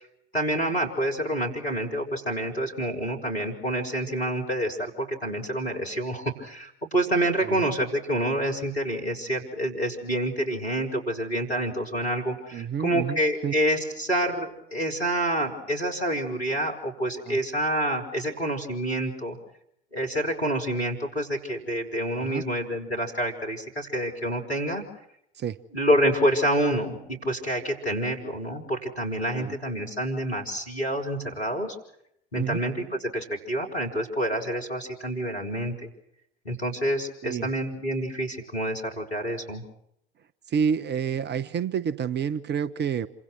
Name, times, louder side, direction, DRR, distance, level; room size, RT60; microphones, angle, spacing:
voice 1, 0.3-19.4 19.9-24.8 25.7-31.7 32.3-35.9 36.4-39.6, right 1 dB, 85° left, 1 dB, 5.1 m, -28 dB
voice 2, 12.5-13.5 17.3-17.4 22.2-22.4 25.4-25.6 29.3-29.5 32.3-32.6 37.2-37.5 40.5-43.1, right 7 dB, 35° right, 17 dB, 1.1 m, -29 dB
28.0 x 25.5 x 6.2 m, 0.74 s
figure-of-eight pair, 65°, 31 cm